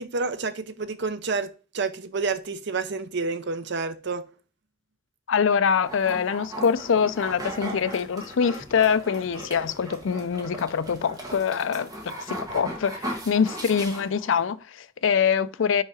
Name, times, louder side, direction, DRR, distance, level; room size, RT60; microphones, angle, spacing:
voice 1, 0.0-4.2, right 4 dB, 60° right, 0.6 m, -29 dB
voice 2, 5.3-15.8, left 6 dB, 70° left, 0.4 m, -24 dB
sound 1, 5.8-14.5, right 1 dB, 20° right, 1.5 m, -37 dB
5.4 x 4.8 x 4.8 m
head